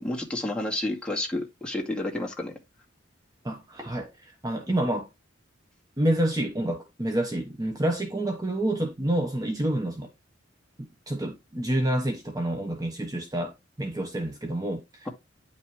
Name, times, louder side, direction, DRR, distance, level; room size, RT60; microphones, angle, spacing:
voice 1, 0.0-2.5, left 1 dB, 5° left, 2.2 m, -30 dB
voice 2, 3.4-5.1 6.0-10.1 10.8-13.5 13.8-15.1, right 1 dB, 20° right, 1.0 m, -28 dB
9.9 x 5.6 x 3.1 m
head